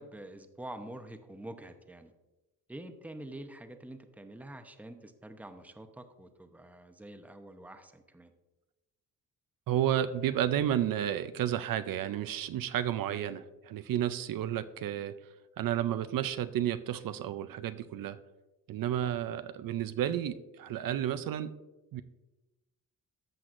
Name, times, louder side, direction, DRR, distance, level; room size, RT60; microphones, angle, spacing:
voice 1, 0.0-2.1 2.7-8.3, right 1 dB, 5° right, 7 dB, 0.7 m, -46 dB
voice 2, 9.7-15.1 15.6-18.2 18.7-21.5 21.9-22.0, right 11 dB, 70° right, 12 dB, 0.5 m, -31 dB
14.0 x 5.9 x 2.5 m, 1.1 s
cardioid pair, 95°, 35 cm